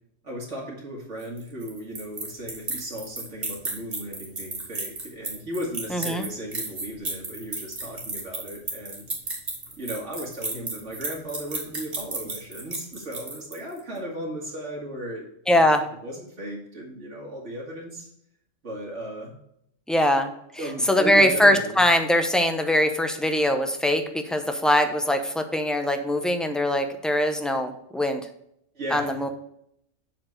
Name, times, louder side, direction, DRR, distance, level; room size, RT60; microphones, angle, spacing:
voice 1, 0.2-9.0 9.8-15.2 15.6-15.7 16.0-18.1 18.6-19.3 20.6-21.8 28.7-29.3, right 1 dB, 70° right, -2 dB, 2.2 m, -36 dB
sound 1, 1.2-13.8, right 2 dB, 50° right, 2.0 m, -33 dB
voice 2, 5.9-6.3 15.5-15.8 19.9-20.3 20.8-28.3 28.9-29.3, left 1 dB, ahead, 5 dB, 0.6 m, -22 dB
7.5 x 4.3 x 6.4 m, 0.73 s
omnidirectional pair, 1.3 m